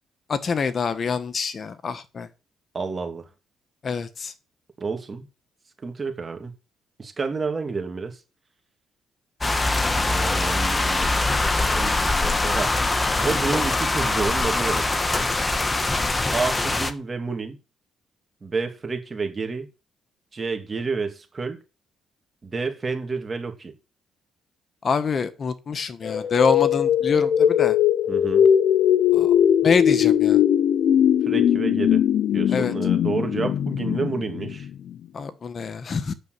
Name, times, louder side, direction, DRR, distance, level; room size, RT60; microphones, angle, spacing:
voice 1, 0.3-2.3 3.8-4.3 24.8-27.8 29.1-29.3 29.6-30.4 32.5-32.7 35.1-36.1, left 5 dB, 45° left, 1.2 m, -25 dB
voice 2, 2.7-3.3 4.8-5.3 5.8-6.5 7.0-8.2 10.1-11.1 11.6-12.7 13.2-14.9 16.3-17.6 18.4-19.7 20.3-21.6 22.4-23.7 28.1-28.5 31.2-32.0 32.3-34.7, right 4 dB, 30° right, 2.9 m, -29 dB
sound 1, 9.4-16.9, left 2 dB, 20° left, 1.3 m, -23 dB
sound 2, 26.0-35.0, left 9 dB, 70° left, 0.7 m, -20 dB
9.1 x 6.6 x 8.2 m
cardioid pair, 90°, 0 cm